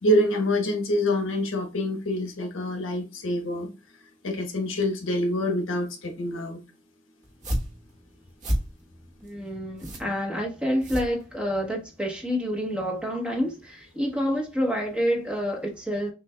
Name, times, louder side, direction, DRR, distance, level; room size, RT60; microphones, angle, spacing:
voice 1, 0.0-3.7 4.2-6.6, left 1 dB, 70° left, 1.1 m, -26 dB
sound 1, 7.2-11.7, equal, 35° right, 1.1 m, -32 dB
voice 2, 9.2-16.1, equal, 5° right, 1.0 m, -28 dB
6.4 x 2.5 x 2.2 m
head